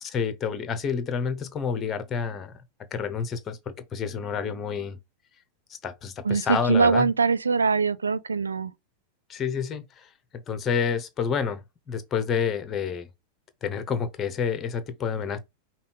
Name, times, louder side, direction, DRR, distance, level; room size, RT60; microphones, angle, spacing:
voice 1, 0.0-2.5 2.9-3.6 3.9-5.0 5.8-7.1 9.3-10.1 10.5-13.1 13.6-15.4, left 6 dB, 25° left, 0.9 m, -29 dB
voice 2, 6.2-8.7, right 5 dB, 75° right, 0.3 m, -22 dB
5.4 x 2.4 x 3.5 m
figure-of-eight pair, 90°, 0 cm